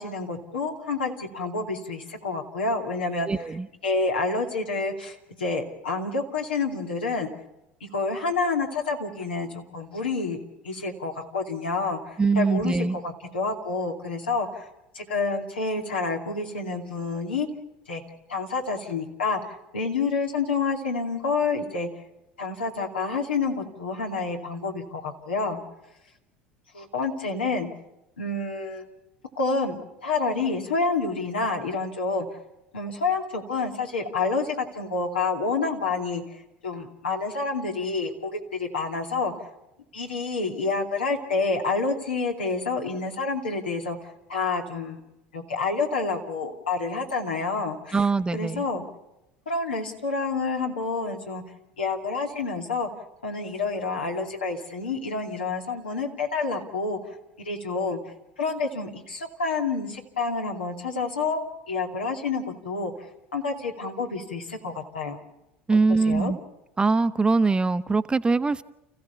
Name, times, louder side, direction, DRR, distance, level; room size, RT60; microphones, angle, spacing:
voice 1, 0.0-3.3 3.8-7.3 7.9-10.4 10.6-14.7 14.9-17.5 17.9-18.0 18.3-19.4 19.7-21.9 22.4-25.6 26.7-27.7 28.2-28.8 29.4-32.3 32.7-39.3 39.9-45.0 45.3-48.0 48.3-48.8 49.5-51.4 51.8-52.9 53.2-58.0 58.4-63.1 63.3-65.2 65.9-66.3, left 4 dB, 90° left, 1 dB, 2.6 m, -28 dB
voice 2, 3.3-3.7 12.2-13.0 47.9-48.6 65.7-66.4 66.8-68.6, right 4 dB, 15° right, 12 dB, 0.8 m, -22 dB
29.5 x 15.5 x 7.1 m, 0.91 s
hypercardioid pair, 75°, 5 cm